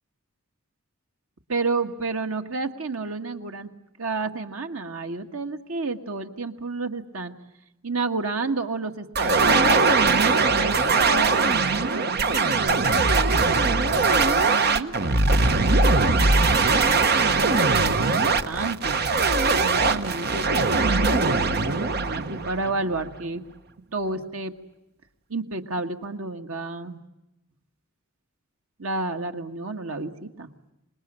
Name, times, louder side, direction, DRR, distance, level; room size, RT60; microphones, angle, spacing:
voice 1, 1.5-3.7 4.0-7.3 7.8-16.3 17.3-19.0 19.6-23.4 23.9-24.5 25.3-27.0 28.8-30.5, right 3 dB, 85° right, 5 dB, 1.7 m, -31 dB
sound 1, 9.1-23.0, right 3 dB, 50° right, 1.0 m, -21 dB
26.5 x 21.0 x 8.8 m, 0.92 s
head